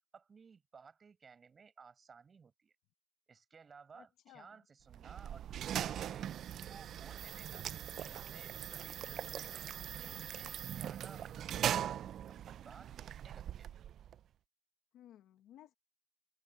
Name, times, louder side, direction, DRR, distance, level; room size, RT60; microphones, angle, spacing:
voice 1, 0.1-2.7 3.3-7.7 8.1-9.6 9.8-12.0 12.3-13.7, right 5 dB, 40° right, 6.0 m, -58 dB
voice 2, 3.9-4.6 14.9-15.7, left 12 dB, 85° left, 1.2 m, -58 dB
sound 1, 4.9-14.2, right 10 dB, 70° right, 0.4 m, -40 dB
cardioid pair, 90°, 0 cm